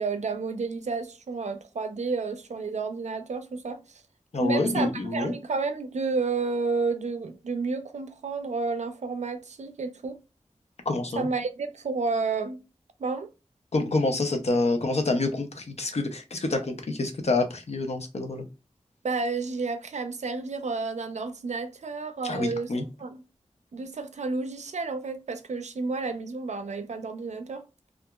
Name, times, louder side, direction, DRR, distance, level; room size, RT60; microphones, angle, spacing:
voice 1, 0.0-3.8 4.4-10.2 11.2-12.6 13.0-13.3 19.0-23.2 23.7-27.6, right 4 dB, 70° right, 0.4 m, -31 dB
voice 2, 4.3-5.3 10.9-11.3 13.7-18.4 22.2-22.8, left 2 dB, 60° left, 0.5 m, -27 dB
2.8 x 2.3 x 2.2 m
wide cardioid pair, 80°, 12 cm